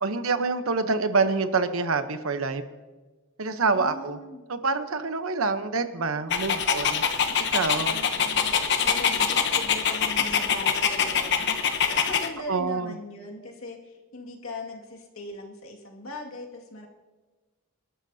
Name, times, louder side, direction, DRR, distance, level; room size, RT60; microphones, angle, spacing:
voice 1, 0.0-2.6 3.4-4.2 4.5-7.0 7.5-7.9 12.5-12.9, right 4 dB, 80° right, 10 dB, 0.9 m, -26 dB
voice 2, 3.7-4.4 7.9-8.6 8.8-11.6 11.9-16.9, left 2 dB, 85° left, 0 dB, 2.2 m, -39 dB
Dog, 6.3-12.3, left 7 dB, 55° left, 0.9 m, -24 dB
26.0 x 12.5 x 2.8 m, 1.3 s
head